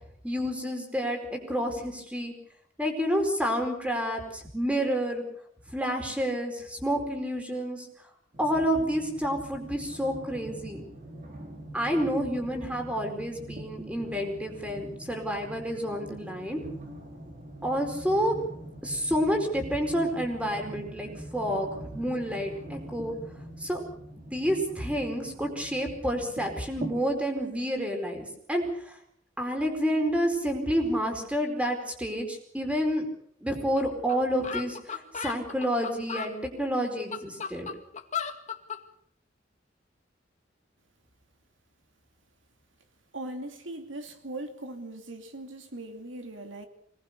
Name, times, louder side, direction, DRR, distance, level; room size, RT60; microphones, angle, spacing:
voice 1, 0.2-2.3 2.8-5.2 5.7-7.9 8.4-10.8 11.7-16.6 17.6-18.4 18.8-23.1 23.6-23.8 24.3-29.0 29.4-33.1 33.4-37.7, equal, 5° right, 4 dB, 4.6 m, -29 dB
sound 1, 8.3-27.0, right 1 dB, 45° right, 4.8 m, -43 dB
sound 2, 33.8-33.9 34.1-34.2 34.4-36.3 36.9-38.8, left 7 dB, 40° left, 2.1 m, -35 dB
voice 2, 43.1-46.7, right 1 dB, 80° right, 6 dB, 2.7 m, -39 dB
25.5 x 19.0 x 6.8 m, 0.68 s
head